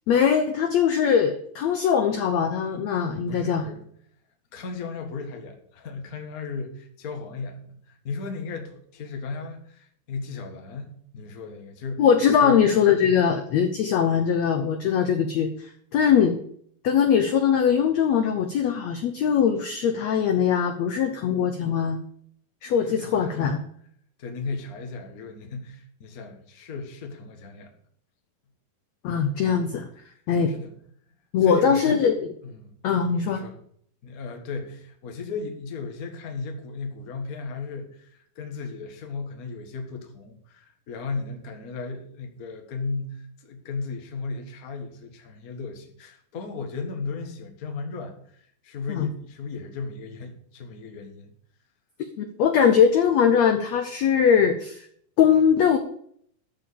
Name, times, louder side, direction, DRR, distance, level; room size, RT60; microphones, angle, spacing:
voice 1, 0.1-3.7 12.0-15.5 15.9-16.4 16.8-22.0 22.6-23.6 29.0-29.9 30.3-30.5 31.3-32.3 32.8-33.4 48.9-49.1 52.2-54.9 55.2-55.8, left 7 dB, 80° left, 6 dB, 1.5 m, -21 dB
voice 2, 3.3-3.9 4.5-12.1 12.4-12.7 22.9-23.5 24.2-27.7 29.6-29.7 30.5-30.7 31.4-32.0 32.4-32.7 33.3-33.6 34.0-51.3, left 4 dB, 50° left, 4 dB, 1.0 m, -35 dB
13.5 x 4.9 x 8.5 m, 0.65 s
omnidirectional pair, 4.3 m